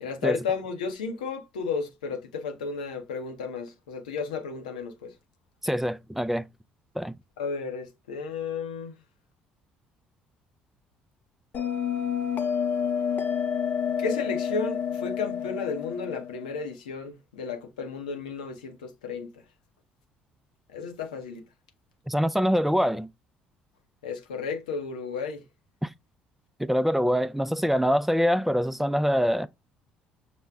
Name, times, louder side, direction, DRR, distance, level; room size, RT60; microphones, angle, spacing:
voice 1, 0.0-5.1 7.4-8.9 14.0-19.4 20.7-21.5 24.0-25.4, left 5 dB, 85° left, 0.6 m, -33 dB
voice 2, 5.6-6.4 7.0-7.1 22.1-23.1 25.8-25.9 26.6-29.5, equal, 5° right, 0.3 m, -24 dB
Bell, 11.5-16.6, left 7 dB, 50° left, 0.6 m, -29 dB
5.9 x 2.1 x 3.4 m
hypercardioid pair, 55°, 4 cm